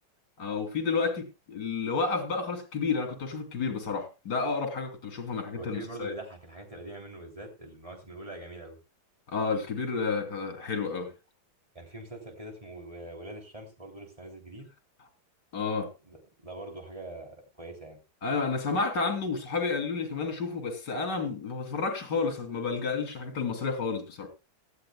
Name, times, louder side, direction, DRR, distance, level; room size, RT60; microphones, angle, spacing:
voice 1, 0.4-6.1 9.3-11.1 15.5-15.9 18.2-24.3, left 4 dB, 55° left, 5 dB, 3.2 m, -31 dB
voice 2, 5.6-8.8 11.7-14.7 16.0-18.0, right 1 dB, 15° right, 2 dB, 3.2 m, -43 dB
18.5 x 13.0 x 2.3 m, 0.26 s
omnidirectional pair, 2.3 m